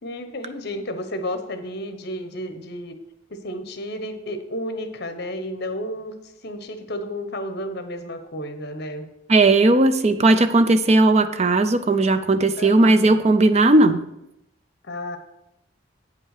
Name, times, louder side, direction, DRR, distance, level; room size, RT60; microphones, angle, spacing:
voice 1, 0.0-3.0 3.3-6.1 6.4-9.1 12.6-13.2 14.8-15.2, left 1 dB, 55° left, 8 dB, 1.0 m, -32 dB
voice 2, 9.3-14.0, right 2 dB, 35° right, 11 dB, 0.4 m, -17 dB
8.5 x 5.5 x 6.6 m, 0.86 s
head